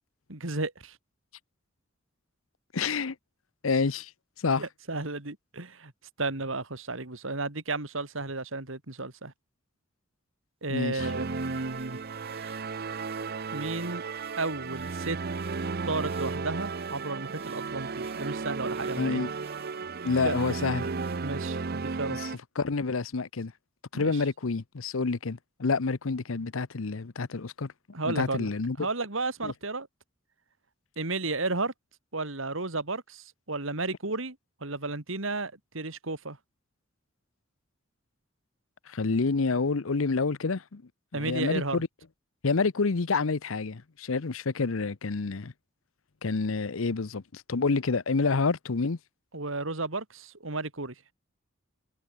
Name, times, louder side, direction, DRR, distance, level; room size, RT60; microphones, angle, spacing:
voice 1, 0.3-1.0 4.6-5.9 6.2-9.3 10.6-12.0 13.5-14.0 14.4-15.2 15.8-19.2 20.2-20.4 21.2-22.2 23.9-24.2 27.9-28.5 28.8-29.9 31.0-31.7 32.1-34.4 34.6-36.4 41.1-41.8 49.3-50.9, right 3 dB, 70° right, 2.9 m, -33 dB
voice 2, 2.7-3.1 3.6-4.1 4.4-4.6 10.7-11.1 19.0-19.3 20.0-20.9 22.1-22.3 22.6-23.5 23.9-27.7 28.0-28.8 29.4-29.5 38.9-40.8 41.1-41.9 42.4-45.5 46.2-49.0, left 4 dB, 75° left, 0.8 m, -28 dB
sound 1, 10.9-21.5, right 6 dB, 30° right, 5.3 m, -57 dB
sound 2, 11.0-22.4, right 4 dB, 50° right, 0.7 m, -34 dB
head